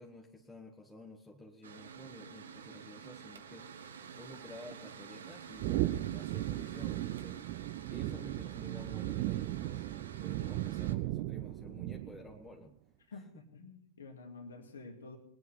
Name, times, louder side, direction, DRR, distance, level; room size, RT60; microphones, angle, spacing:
voice 1, 0.0-3.7 4.1-7.4 7.9-9.8 10.2-12.7 13.1-13.4, left 1 dB, 10° left, 0 dB, 1.7 m, -52 dB
Mechanical fan, 1.6-10.9, right 7 dB, 65° right, 1.2 m, -50 dB
sound 1, 5.6-12.4, right 16 dB, 45° right, 0.6 m, -36 dB
voice 2, 13.1-15.2, left 3 dB, 70° left, 5 dB, 2.2 m, -49 dB
21.0 x 9.6 x 5.6 m, 0.66 s
figure-of-eight pair, 90°, 0 cm